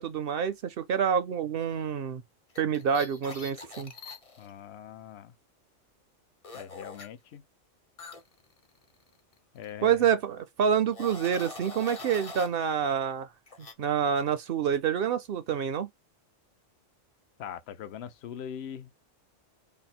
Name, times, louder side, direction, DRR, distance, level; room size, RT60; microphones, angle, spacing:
voice 1, 0.0-2.2 2.6-3.9 9.8-13.3 13.6-15.9, right 8 dB, 60° right, 0.7 m, -27 dB
sound 1, 2.5-4.5 6.4-7.1 8.0-9.4 9.6-9.9 10.7-12.5 13.5-13.7, left 3 dB, 35° left, 0.7 m, -44 dB
voice 2, 4.4-5.3 6.5-7.4 9.5-10.1 17.4-18.9, left 9 dB, 65° left, 0.8 m, -41 dB
3.5 x 2.1 x 4.1 m
omnidirectional pair, 1.3 m